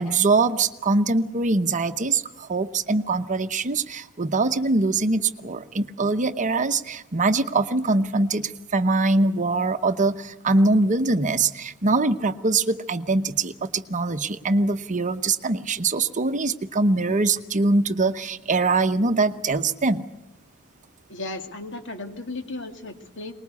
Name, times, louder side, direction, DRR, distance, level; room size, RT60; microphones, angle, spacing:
voice 1, 0.0-20.0, right 3 dB, 35° right, 10 dB, 0.9 m, -23 dB
voice 2, 21.1-23.3, left 2 dB, 55° left, 5 dB, 2.5 m, -35 dB
24.0 x 20.5 x 8.3 m, 0.90 s
head